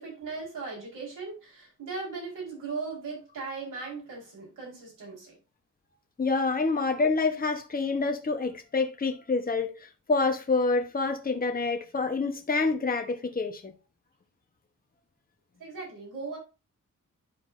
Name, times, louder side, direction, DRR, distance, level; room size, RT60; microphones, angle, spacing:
voice 1, 0.0-5.4 6.7-6.8 15.6-16.4, right 4 dB, 85° right, 4.8 m, -38 dB
voice 2, 6.2-9.7 10.1-13.7, left 3 dB, 30° left, 1.1 m, -27 dB
11.5 x 4.7 x 2.6 m
wide cardioid pair, 115°, 31 cm